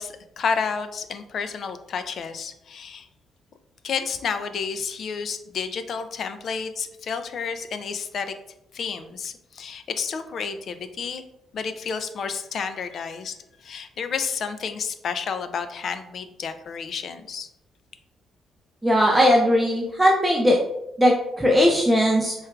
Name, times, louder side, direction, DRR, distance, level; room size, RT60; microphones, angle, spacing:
voice 1, 0.0-3.1 3.8-8.4 8.7-11.2 11.5-13.3 13.6-17.5, left 6 dB, 60° left, 10 dB, 0.3 m, -30 dB
voice 2, 18.8-20.6 21.0-22.3, equal, 10° right, -1 dB, 0.4 m, -19 dB
4.3 x 2.3 x 2.3 m, 0.84 s
cardioid pair, 90°, 0 cm